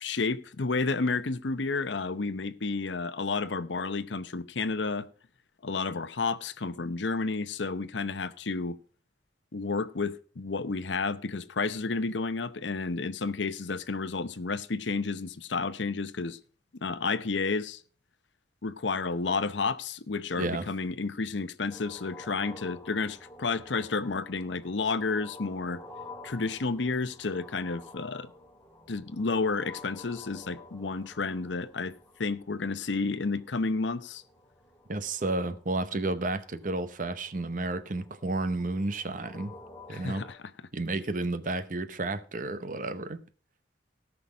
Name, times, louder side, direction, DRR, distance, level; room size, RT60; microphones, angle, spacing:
voice 1, 0.0-5.1 5.6-8.8 9.5-16.4 16.8-17.8 18.6-25.8 26.2-28.3 28.9-34.2 39.9-40.4, left 4 dB, 85° left, 0.8 m, -31 dB
voice 2, 20.4-20.7 34.9-39.5 39.9-40.2 40.7-43.2, right 2 dB, 45° right, 0.8 m, -31 dB
sound 1, 21.7-40.3, left 2 dB, 15° left, 2.6 m, -50 dB
17.5 x 6.0 x 4.8 m
head